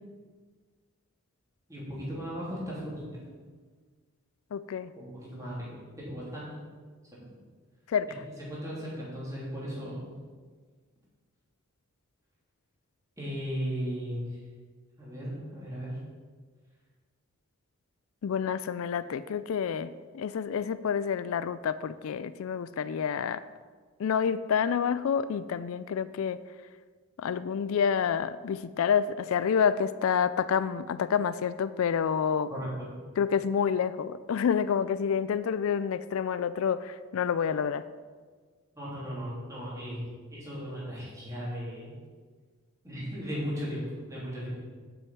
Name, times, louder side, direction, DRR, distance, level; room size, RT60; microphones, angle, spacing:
voice 1, 1.7-3.2 4.9-5.7 6.0-6.7 7.1-7.3 8.5-10.1 13.2-14.2 15.0-16.0 32.5-32.9 38.7-40.0 40.3-41.9 42.8-44.6, equal, 15° right, -7 dB, 3.2 m, -36 dB
voice 2, 4.5-4.9 7.9-8.1 18.2-23.4 24.0-26.4 27.2-32.5 33.2-37.8, left 7 dB, 70° left, 14 dB, 0.3 m, -28 dB
7.6 x 6.3 x 7.9 m, 1.5 s
head